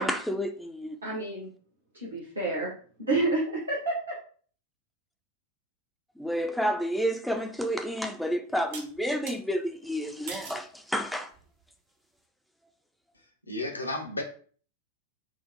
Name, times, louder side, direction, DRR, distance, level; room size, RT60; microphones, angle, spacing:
voice 1, 0.0-1.0 6.2-11.3, equal, ahead, 0.3 m, -30 dB
voice 2, 1.0-1.5 1.9-2.7 3.0-4.2, right 2 dB, 75° right, 1.0 m, -29 dB
sound 1, 7.4-7.5 8.7-9.4 10.3-10.7 11.3-11.7, right 5 dB, 50° right, 0.7 m, -42 dB
voice 3, 13.5-14.2, left 2 dB, 80° left, 0.6 m, -32 dB
4.4 x 2.1 x 2.6 m
figure-of-eight pair, 90°, 0 cm